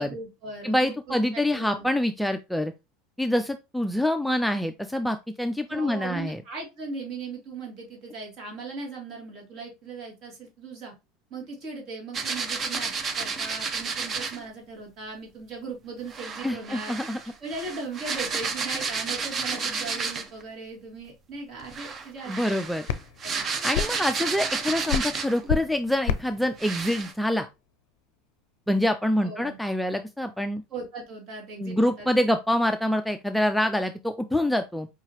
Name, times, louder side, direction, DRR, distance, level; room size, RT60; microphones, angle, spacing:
voice 1, 0.0-1.9 5.7-10.9 11.3-16.9 17.4-22.6 23.2-23.5 29.2-29.6 30.7-32.1, right 3 dB, 50° right, 0 dB, 2.1 m, -38 dB
voice 2, 0.6-2.7 3.2-6.4 16.4-17.2 22.3-22.8 23.6-27.5 28.7-30.6 31.6-34.9, left 1 dB, ahead, 7 dB, 0.3 m, -26 dB
sound 1, 12.1-14.4 16.1-20.4 21.6-25.5 26.1-26.2 26.6-27.1, right 5 dB, 30° right, 0.6 m, -31 dB
sound 2, 21.9-28.3, left 8 dB, 80° left, 0.4 m, -33 dB
4.7 x 2.8 x 2.9 m, 0.25 s
supercardioid pair, 120°, 0 cm